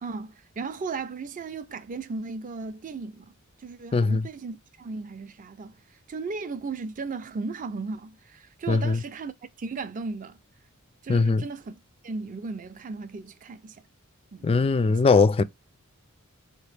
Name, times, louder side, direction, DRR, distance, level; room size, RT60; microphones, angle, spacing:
voice 1, 0.0-5.8 6.1-9.3 9.6-10.4 11.0-11.8 12.0-13.8 14.3-14.5 14.8-15.0, right 4 dB, 40° right, 0.4 m, -36 dB
voice 2, 8.7-9.0 11.1-11.4 14.4-15.4, left 4 dB, 25° left, 0.3 m, -20 dB
4.4 x 2.9 x 3.3 m
head